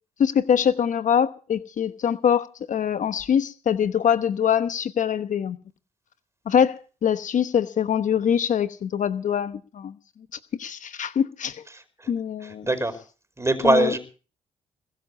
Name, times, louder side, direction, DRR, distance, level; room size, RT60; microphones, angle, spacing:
voice 1, 0.2-5.6 6.5-10.0 10.5-11.6 12.1-12.7 13.6-13.9, left 8 dB, 60° left, 1.0 m, -23 dB
voice 2, 11.7-12.1 12.4-13.0 13.4-14.0, right 2 dB, 20° right, 4.9 m, -23 dB
21.5 x 7.2 x 8.4 m
hypercardioid pair, 50°, 15 cm